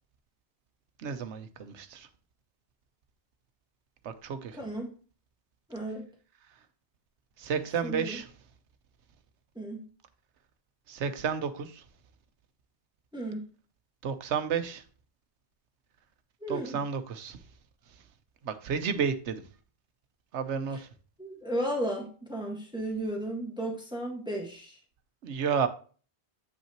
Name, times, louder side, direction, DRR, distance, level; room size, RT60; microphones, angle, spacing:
voice 1, 1.0-2.1 4.0-4.6 7.4-8.3 10.9-11.8 14.0-14.8 16.5-17.4 18.4-19.4 20.3-20.9 25.2-25.7, right 6 dB, 80° right, 1.1 m, -31 dB
voice 2, 4.5-4.9 5.7-6.0 7.8-8.2 9.5-9.8 13.1-13.4 16.4-16.8 21.2-24.8, right 1 dB, 5° right, 1.5 m, -34 dB
8.2 x 5.5 x 2.9 m
omnidirectional pair, 1.1 m